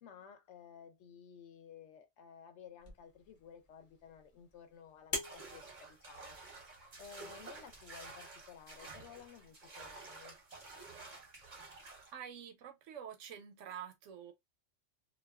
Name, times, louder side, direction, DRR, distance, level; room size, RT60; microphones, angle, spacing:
voice 1, 0.0-6.4 7.0-10.4, left 7 dB, 70° left, 0.9 m, -55 dB
sound 1, 2.8-7.8, left 1 dB, 40° left, 0.6 m, -47 dB
sound 2, 5.2-12.1, right 3 dB, 40° right, 0.7 m, -51 dB
voice 2, 12.1-14.3, right 8 dB, 80° right, 0.9 m, -47 dB
2.4 x 2.3 x 2.3 m
omnidirectional pair, 1.3 m